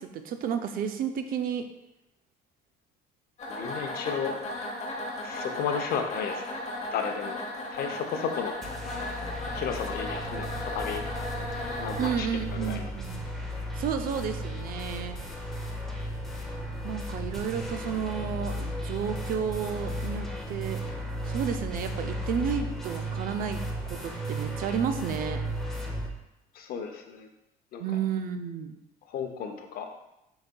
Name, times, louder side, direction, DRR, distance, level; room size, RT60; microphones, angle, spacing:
voice 1, 0.0-1.7 12.0-13.3 13.7-15.2 16.8-20.8 21.2-25.4 27.8-28.8, right 7 dB, 60° right, 8 dB, 0.4 m, -32 dB
sound 1, 3.4-12.1, left 2 dB, 40° left, 0.8 m, -36 dB
voice 2, 3.5-4.4 5.2-6.5 6.9-7.4 7.7-8.6 9.5-11.0 11.8-12.3 12.5-12.9 26.5-27.3 27.7-27.8 29.1-29.9, left 7 dB, 65° left, 5 dB, 0.6 m, -33 dB
sound 2, 8.6-26.1, equal, ahead, 0.6 m, -35 dB
4.6 x 3.9 x 2.2 m, 0.90 s
cardioid pair, 110°, 17 cm